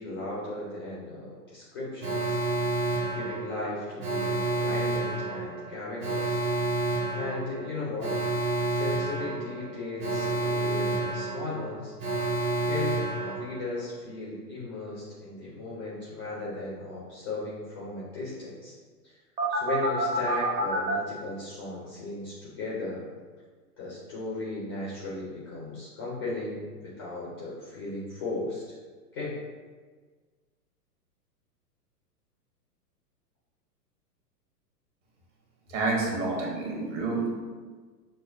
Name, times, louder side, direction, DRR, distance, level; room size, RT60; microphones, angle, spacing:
voice 1, 0.0-2.4 3.1-6.4 7.1-8.1 8.7-11.9 12.7-13.0 13.2-18.7 19.0-19.1 19.5-23.0 23.8-26.6 27.0-28.6 29.1-29.4, left 2 dB, 20° left, -7 dB, 0.3 m, -36 dB
Alarm, 2.0-13.9 19.4-20.9, right 2 dB, 25° right, 0.6 m, -29 dB
voice 2, 35.7-37.3, right 3 dB, 50° right, -2 dB, 1.1 m, -28 dB
6.1 x 2.1 x 2.5 m, 1.4 s
figure-of-eight pair, 110°, 48 cm